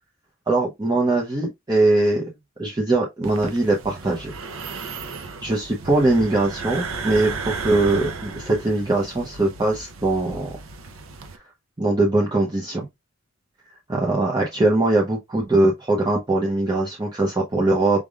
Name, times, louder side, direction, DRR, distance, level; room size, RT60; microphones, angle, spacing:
voice 1, 0.5-2.2 2.6-4.3 5.4-10.5 11.8-12.9 13.9-18.1, right 2 dB, 20° right, 0.8 m, -21 dB
sound 1, 3.2-11.4, right 4 dB, 85° right, 0.8 m, -34 dB
5.0 x 3.4 x 2.4 m
head